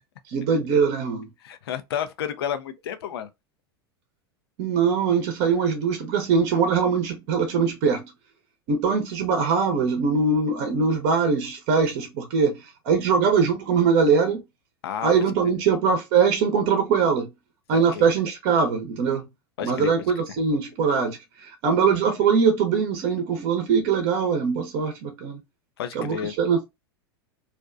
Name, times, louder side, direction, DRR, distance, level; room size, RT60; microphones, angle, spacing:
voice 1, 0.3-1.3 4.6-8.1 8.7-14.4 15.0-17.3 17.7-19.3 19.6-25.4 25.9-26.6, right 5 dB, 50° right, 0.8 m, -22 dB
voice 2, 1.4-3.3 14.8-15.1 17.7-18.1 19.6-19.9 25.8-26.3, left 9 dB, 70° left, 0.6 m, -31 dB
2.5 x 2.2 x 2.4 m
hypercardioid pair, 95°, 13 cm